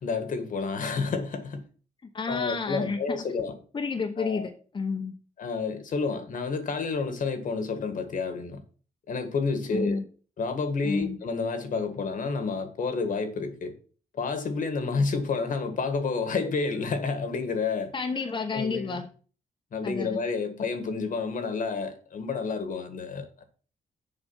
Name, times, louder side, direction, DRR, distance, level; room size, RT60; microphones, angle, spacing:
voice 1, 0.0-1.6 2.3-3.6 4.2-4.5 5.4-8.6 9.1-10.0 10.4-13.7 14.2-17.9 18.5-19.0 19.7-23.4, left 4 dB, 65° left, 1.7 m, -30 dB
voice 2, 2.1-3.2 3.7-5.1 9.7-10.0 10.8-11.2 17.9-19.1 19.8-20.2, left 4 dB, 35° left, 0.9 m, -30 dB
7.3 x 5.1 x 7.2 m
cardioid pair, 100°, 15 cm